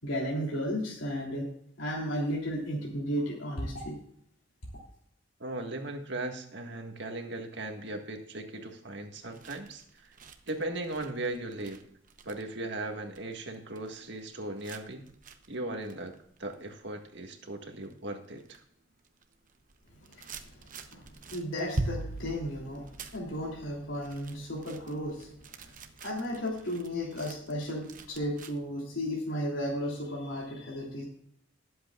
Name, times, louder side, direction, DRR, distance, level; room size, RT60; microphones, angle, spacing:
voice 1, 0.0-1.4 1.8-3.9 20.1-20.4 20.9-22.9 23.1-25.3 25.6-25.7 26.0-31.0, equal, 85° left, -3 dB, 3.1 m, -34 dB
voice 2, 5.4-9.8 10.5-11.8 12.2-15.0 15.5-16.1 16.4-18.4, right 2 dB, 65° right, 4 dB, 1.7 m, -37 dB
sound 1, 9.2-17.4 17.8-18.6 18.9-28.6, right 2 dB, 45° right, 0.9 m, -43 dB
20.0 x 8.0 x 2.5 m, 0.66 s
head